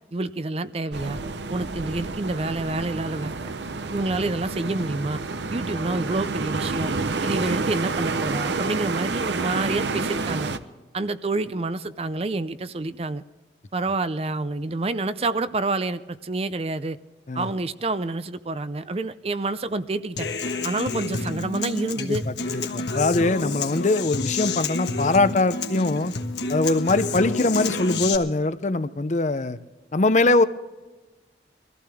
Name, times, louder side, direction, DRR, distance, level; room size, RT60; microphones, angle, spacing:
voice 1, 0.1-1.2 1.5-3.6 3.9-5.2 5.5-6.9 7.2-10.5 10.9-13.2 13.7-17.0 17.3-20.3 20.6-22.2, right 2 dB, 35° right, 13 dB, 0.5 m, -28 dB
sound 1, 0.9-10.6, right 3 dB, 85° right, 0.8 m, -29 dB
Human voice / Acoustic guitar, 20.2-28.2, left 3 dB, 80° left, 1.4 m, -29 dB
voice 2, 22.0-26.1 26.5-29.6 29.9-30.4, left 2 dB, 40° left, 13 dB, 0.6 m, -22 dB
23.0 x 14.5 x 3.5 m, 1.2 s
head